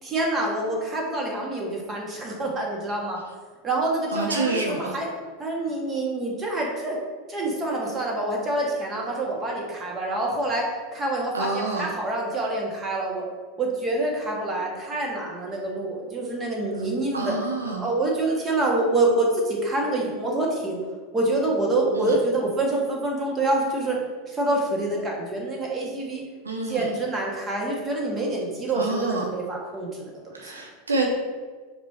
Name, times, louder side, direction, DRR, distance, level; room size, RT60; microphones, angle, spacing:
voice 1, 0.0-3.2 3.6-5.1 5.4-7.0 7.3-13.3 13.6-17.4 17.8-20.8 21.1-24.0 24.3-26.2 26.7-30.5, right 2 dB, 25° right, -2 dB, 1.9 m, -26 dB
voice 2, 4.1-4.9 11.3-11.9 17.1-17.8 22.0-22.1 26.4-26.8 28.8-29.3 30.3-31.1, right 3 dB, 85° right, 1 dB, 0.8 m, -27 dB
5.5 x 5.0 x 4.3 m, 1.5 s
hypercardioid pair, 90°, 0 cm